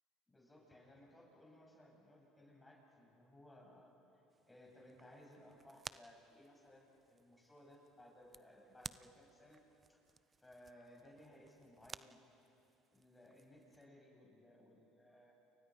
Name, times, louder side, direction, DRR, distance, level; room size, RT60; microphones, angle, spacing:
voice 1, 0.3-4.2 4.5-9.6 9.9-10.0 10.4-12.2 12.9-15.3, left 1 dB, 15° left, -2 dB, 7.8 m, -61 dB
sound 1, 4.3-13.9, right 5 dB, 25° right, 0.6 m, -57 dB
29.5 x 29.0 x 5.4 m, 2.8 s
supercardioid pair, 85°, 0 cm